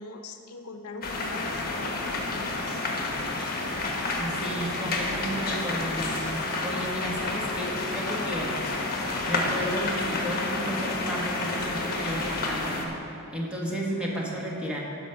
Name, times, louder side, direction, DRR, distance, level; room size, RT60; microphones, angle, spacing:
voice 1, 0.0-2.6, left 2 dB, 75° left, 5 dB, 0.6 m, -41 dB
sound 1, 1.0-12.9, left 2 dB, 45° left, 1.2 m, -30 dB
voice 2, 4.1-6.2 6.6-8.6 9.2-12.8 13.3-14.8, equal, 5° right, -3 dB, 1.4 m, -33 dB
12.5 x 5.1 x 5.7 m, 2.8 s
head